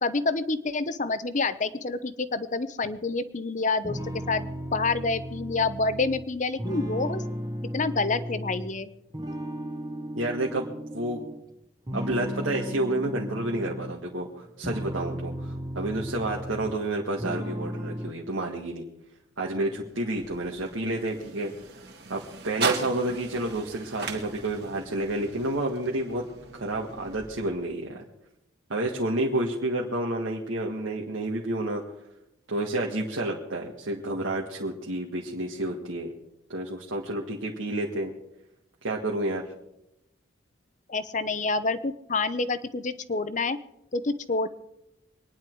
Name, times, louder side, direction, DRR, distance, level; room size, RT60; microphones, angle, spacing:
voice 1, 0.0-4.0 4.3-7.2 7.7-8.9 40.9-43.6 43.9-44.5, left 3 dB, 40° left, 13 dB, 0.8 m, -28 dB
sound 1, 3.8-8.7 9.1-11.4 11.9-14.0 14.5-16.9 17.2-18.1, equal, 20° right, 1.1 m, -35 dB
voice 2, 10.1-10.7 10.9-11.2 11.9-18.8 19.4-21.8 22.1-26.2 26.5-28.0 28.7-31.8 32.5-36.1 36.5-38.1 38.8-39.4, right 1 dB, 90° right, -2 dB, 1.8 m, -30 dB
sound 2, 19.6-27.9, right 4 dB, 55° right, 2.2 m, -37 dB
24.5 x 10.5 x 4.7 m, 0.86 s
head